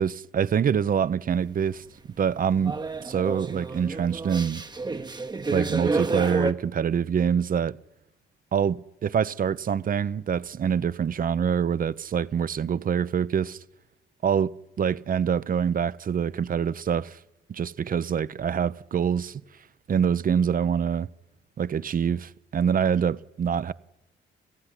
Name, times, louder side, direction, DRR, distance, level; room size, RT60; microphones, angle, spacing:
voice 1, 0.0-1.8 2.2-2.7 3.0-4.6 5.5-7.8 8.5-13.6 14.2-17.2 17.5-19.4 19.9-21.1 21.6-23.7, right 7 dB, 45° right, 0.8 m, -25 dB
sound 1, 2.3-6.5, right 3 dB, 20° right, 1.0 m, -30 dB
28.5 x 15.5 x 10.0 m
cardioid pair, 90°, 20 cm